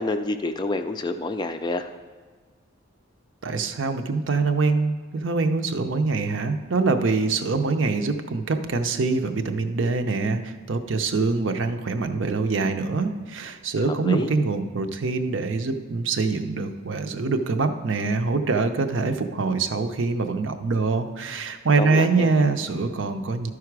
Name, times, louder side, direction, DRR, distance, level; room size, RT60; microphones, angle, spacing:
voice 1, 0.0-1.9 13.9-14.3 21.8-22.4, left 2 dB, 20° left, 8 dB, 0.3 m, -28 dB
voice 2, 3.4-23.5, right 4 dB, 65° right, 7 dB, 0.6 m, -24 dB
12.0 x 4.8 x 4.7 m, 1.5 s
head